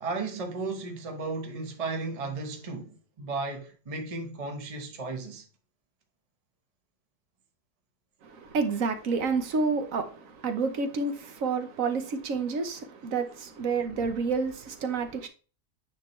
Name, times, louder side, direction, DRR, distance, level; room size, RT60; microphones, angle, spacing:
voice 1, 0.0-5.4, right 3 dB, 25° right, 0.9 m, -34 dB
voice 2, 8.2-15.3, right 4 dB, 60° right, 1.2 m, -29 dB
9.1 x 3.8 x 3.1 m
omnidirectional pair, 1.8 m